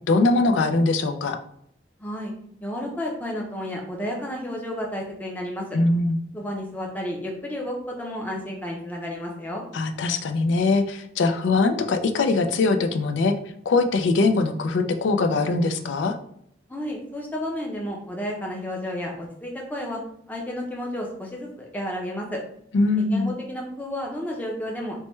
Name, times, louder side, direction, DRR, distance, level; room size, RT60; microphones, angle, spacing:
voice 1, 0.1-1.4 5.7-6.2 9.7-13.3 13.7-16.2 22.7-23.3, left 3 dB, 90° left, 7 dB, 0.4 m, -22 dB
voice 2, 2.0-2.3 2.6-5.6 6.3-9.6 16.7-20.0 20.3-22.4 23.0-25.0, left 1 dB, 10° left, -1 dB, 0.5 m, -32 dB
3.1 x 2.1 x 3.1 m, 0.70 s
head